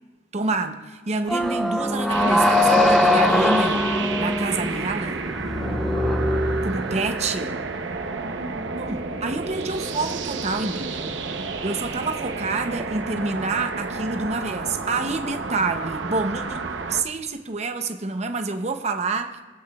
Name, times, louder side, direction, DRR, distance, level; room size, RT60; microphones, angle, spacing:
voice 1, 0.3-3.8 4.2-5.2 6.6-7.6 8.8-11.2 11.6-16.6 16.9-19.4, right 3 dB, 35° right, 6 dB, 0.7 m, -27 dB
sound 1, 1.3-7.3, left 1 dB, ahead, 0.5 m, -22 dB
sound 2, 2.1-17.0, right 3 dB, 90° right, 0.8 m, -31 dB
voice 2, 4.5-6.0 8.2-9.0, right 1 dB, 70° right, 2 dB, 1.2 m, -40 dB
20.5 x 8.6 x 2.3 m, 1.3 s
head